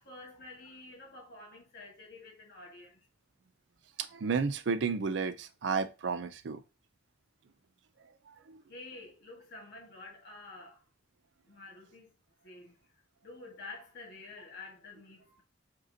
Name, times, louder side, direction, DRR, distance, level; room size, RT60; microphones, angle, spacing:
voice 1, 0.0-3.1 8.4-10.8 11.4-12.1 12.4-12.8 13.2-15.4, left 3 dB, 50° left, 1.5 m, -49 dB
voice 2, 4.0-6.6 8.5-8.6, right 5 dB, 65° right, 0.4 m, -32 dB
4.9 x 2.7 x 2.7 m
head